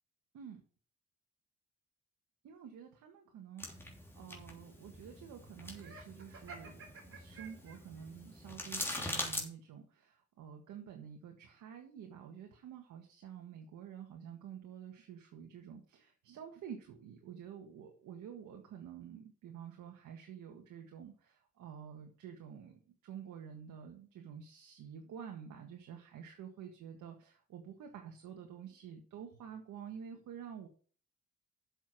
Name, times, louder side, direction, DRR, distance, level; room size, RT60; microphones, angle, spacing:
voice 1, 2.4-6.8 7.1-30.7, right 8 dB, 80° right, 4 dB, 1.7 m, -49 dB
sound 1, 3.6-9.4, left 1 dB, 10° left, 3.2 m, -43 dB
Laughter, 5.7-8.1, right 4 dB, 45° right, 3.4 m, -52 dB
7.5 x 6.6 x 6.1 m, 0.43 s
cardioid pair, 90°, 30 cm